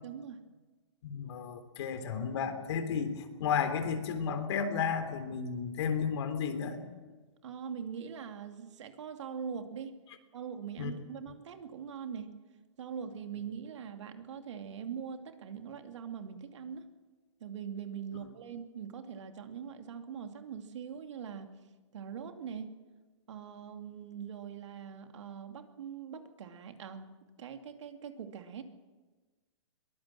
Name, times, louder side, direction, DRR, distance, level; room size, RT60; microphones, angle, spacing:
voice 1, 0.0-0.4 7.4-9.9 10.3-12.3 12.8-16.9 17.4-21.5 21.9-22.7 23.3-27.1 27.4-28.6, right 7 dB, 70° right, 6 dB, 2.5 m, -42 dB
voice 2, 1.0-6.8 10.8-10.9, left 6 dB, 60° left, 8 dB, 3.5 m, -33 dB
22.5 x 19.0 x 7.6 m, 1.3 s
hypercardioid pair, 140°, 16 cm